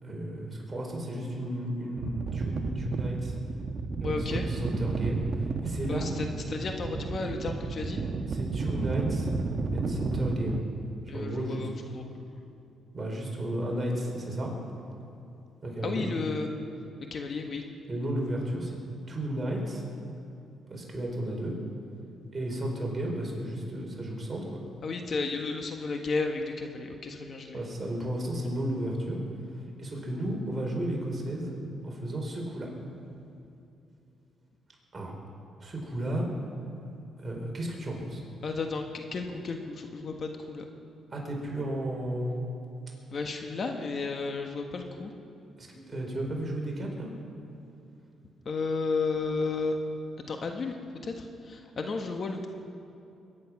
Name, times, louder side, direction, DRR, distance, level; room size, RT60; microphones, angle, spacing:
voice 1, 0.0-3.3 4.0-6.1 8.3-9.3 9.7-10.6 11.1-11.7 12.9-14.5 15.6-16.1 17.9-18.8 19.1-19.8 20.7-21.5 22.3-24.4 27.5-29.2 29.8-31.6 31.8-32.7 34.9-35.1 35.6-36.3 37.2-38.2 41.1-42.3 45.6-47.1, right 1 dB, 25° right, -1 dB, 4.5 m, -33 dB
sound 1, 2.0-10.6, right 4 dB, 45° right, 1.1 m, -32 dB
voice 2, 4.0-4.4 5.9-8.0 11.1-12.0 15.8-16.5 17.1-17.6 24.8-27.6 38.4-40.7 43.1-45.1 48.4-49.8 50.3-50.7 51.0-52.5, left 4 dB, 50° left, 4 dB, 1.4 m, -33 dB
22.5 x 10.5 x 6.0 m, 2.7 s
cardioid pair, 90°, 0 cm